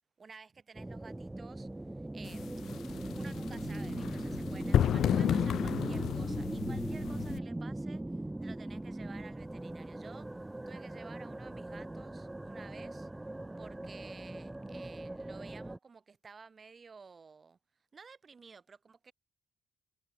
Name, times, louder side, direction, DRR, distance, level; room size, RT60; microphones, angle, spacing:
voice 1, 0.2-2.4 3.1-10.3 10.7-13.1 13.6-17.6 17.9-19.1, right 5 dB, 35° right, 3.8 m, -53 dB
sound 1, 0.7-15.8, right 1 dB, 10° right, 2.0 m, -39 dB
sound 2, 2.2-7.4, left 10 dB, 70° left, 0.4 m, -32 dB
cardioid pair, 120°, 0 cm